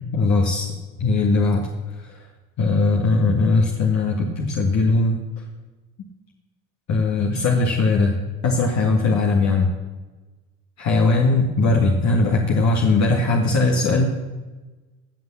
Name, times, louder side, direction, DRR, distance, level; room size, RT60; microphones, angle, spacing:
voice 1, 0.1-0.7 1.0-1.7 2.0-2.2 2.6-5.2 6.9-8.1 8.4-9.7 10.8-14.0, left 3 dB, 55° left, 0 dB, 1.9 m, -19 dB
17.0 x 5.9 x 7.2 m, 1.2 s
supercardioid pair, 80°, 33 cm